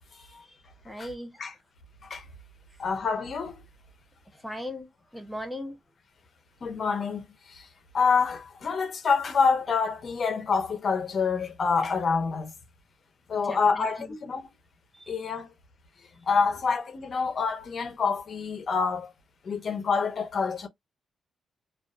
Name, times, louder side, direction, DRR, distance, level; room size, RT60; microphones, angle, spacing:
voice 1, 0.1-0.6 0.8-1.4 4.3-5.8 13.4-14.1 14.9-15.3, left 1 dB, ahead, 0.7 m, -39 dB
voice 2, 2.8-3.6 6.6-7.2 7.5-7.6 7.9-12.5 13.3-14.5 15.1-15.5 16.3-19.1 19.4-20.7, left 5 dB, 50° left, 0.7 m, -27 dB
2.5 x 2.4 x 2.3 m
cardioid pair, 90°, 0 cm